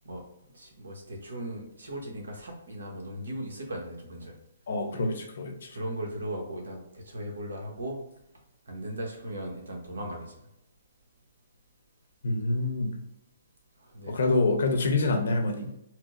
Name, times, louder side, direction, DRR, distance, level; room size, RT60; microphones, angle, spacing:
voice 1, 0.5-4.3 5.7-8.0 8.7-10.3 13.8-14.4, right 1 dB, 85° right, 1 dB, 1.0 m, -37 dB
voice 2, 4.7-5.8 12.2-13.0 14.1-15.8, left 2 dB, 65° left, 4 dB, 0.8 m, -27 dB
4.3 x 2.1 x 2.5 m, 0.83 s
hypercardioid pair, 140°, 0 cm